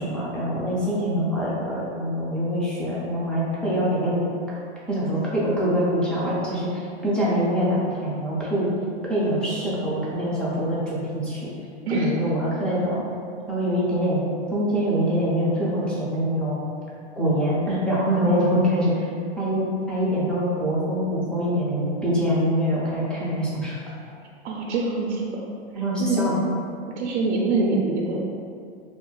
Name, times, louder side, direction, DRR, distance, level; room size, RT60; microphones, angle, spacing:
voice 1, 0.0-4.2 4.9-7.7 8.0-8.7 9.1-11.5 11.9-13.0 13.5-14.2 14.5-16.6 17.2-18.9 19.4-23.7 25.7-26.4, equal, 5° left, -8 dB, 0.3 m, -24 dB
voice 2, 24.4-25.4 26.0-26.2 27.0-28.2, right 3 dB, 70° right, -1 dB, 0.5 m, -25 dB
2.4 x 2.1 x 3.8 m, 2.4 s
hypercardioid pair, 130°, 33 cm